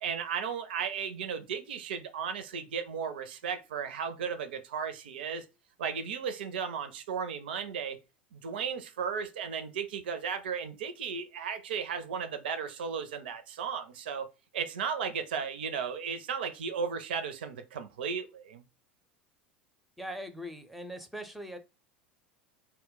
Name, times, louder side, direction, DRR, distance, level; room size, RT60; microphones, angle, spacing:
voice 1, 0.0-5.5 5.8-8.0 8.3-14.3 14.5-18.6, right 6 dB, 70° right, 0.4 m, -35 dB
voice 2, 20.0-21.6, equal, ahead, 0.5 m, -41 dB
2.2 x 2.1 x 3.7 m
figure-of-eight pair, 75°, 6 cm